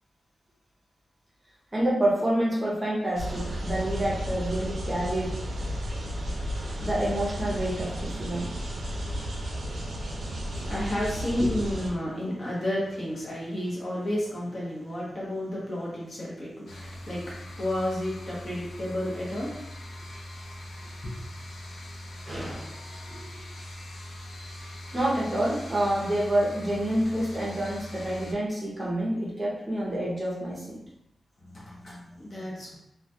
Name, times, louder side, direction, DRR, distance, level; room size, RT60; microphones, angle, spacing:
voice 1, 1.7-5.4 6.8-8.5 22.3-22.7 24.9-30.8, right 1 dB, 20° right, -5 dB, 0.6 m, -28 dB
sound 1, 3.1-11.9, equal, 70° right, 0.5 m, -33 dB
voice 2, 10.4-17.2 17.6-19.5 21.0-21.2 22.5-22.8 23.1-23.3 31.4-32.8, left 1 dB, 40° left, -6 dB, 0.7 m, -32 dB
sound 2, 16.7-28.3, left 1 dB, 75° left, 0.4 m, -42 dB
2.2 x 2.1 x 2.6 m, 0.84 s
wide cardioid pair, 160°, 0 cm